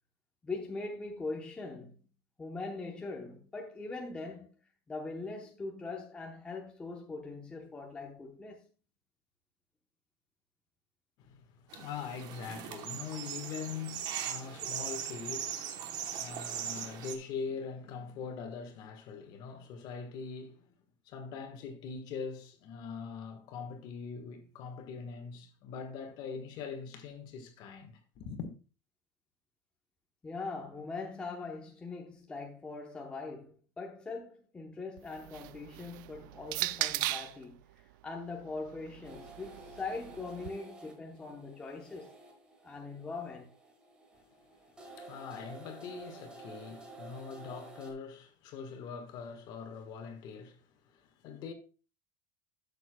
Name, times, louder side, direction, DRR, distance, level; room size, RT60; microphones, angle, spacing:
voice 1, 0.4-2.0 2.4-4.5 4.9-8.6 30.2-42.1 42.6-43.5, left 3 dB, 10° left, 0.8 m, -41 dB
voice 2, 11.2-20.7 21.0-28.5 45.0-51.5, left 5 dB, 40° left, 1.4 m, -42 dB
sound 1, 11.7-17.2, right 9 dB, 40° right, 1.0 m, -39 dB
sound 2, 35.0-37.4 38.4-40.5, right 18 dB, 70° right, 0.4 m, -38 dB
sound 3, 39.0-47.9, right 2 dB, 10° right, 1.5 m, -52 dB
12.5 x 7.0 x 2.2 m
cardioid pair, 175°, 11 cm